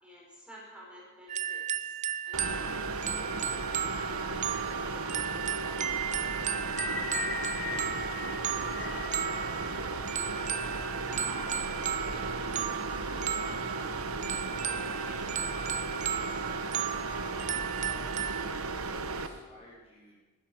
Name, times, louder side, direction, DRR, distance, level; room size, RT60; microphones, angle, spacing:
voice 1, 0.0-2.0 2.2-3.2 3.9-6.0 6.7-7.0 7.2-9.4 10.4-10.7 11.1-14.1 14.7-15.9 16.3-17.0, equal, 5° right, -5 dB, 4.4 m, -51 dB
sound 1, 1.3-18.5, right 8 dB, 35° right, 0.6 m, -35 dB
sound 2, 2.3-19.3, right 3 dB, 85° right, 1.0 m, -35 dB
sound 3, 6.6-11.0, left 4 dB, 70° left, 3.3 m, -39 dB
voice 2, 10.5-10.8 17.7-20.2, left 1 dB, 30° left, -7 dB, 4.4 m, -54 dB
15.0 x 11.5 x 6.1 m, 1.3 s
head